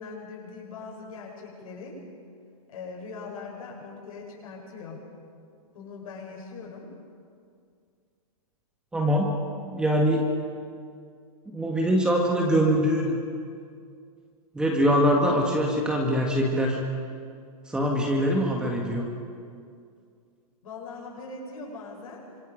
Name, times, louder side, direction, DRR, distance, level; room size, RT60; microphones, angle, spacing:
voice 1, 0.0-2.0 2.7-5.0 5.7-6.9 20.6-22.2, left 4 dB, 65° left, -2 dB, 7.8 m, -41 dB
voice 2, 8.9-9.4 9.7-10.2 11.5-13.2 14.5-16.8 17.7-19.0, equal, 5° right, -1 dB, 1.7 m, -23 dB
27.5 x 26.5 x 5.3 m, 2.3 s
hypercardioid pair, 170°, 19 cm